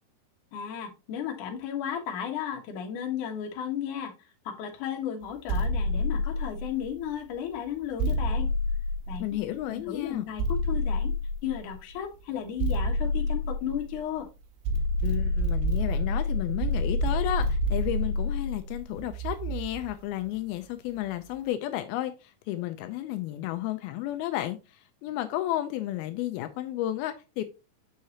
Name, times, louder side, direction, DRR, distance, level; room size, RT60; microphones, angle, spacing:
voice 1, 0.5-4.1 4.5-8.5 9.1-11.1 11.4-14.3, left 9 dB, 65° left, 2.6 m, -34 dB
sound 1, 5.5-7.0 8.0-9.6 10.4-11.8 12.6-14.2 14.7-19.9, left 1 dB, 85° right, 3.0 m, -28 dB
voice 2, 9.2-10.3 15.0-24.6 25.0-27.5, left 14 dB, 85° left, 2.5 m, -32 dB
6.6 x 6.4 x 2.8 m
omnidirectional pair, 4.4 m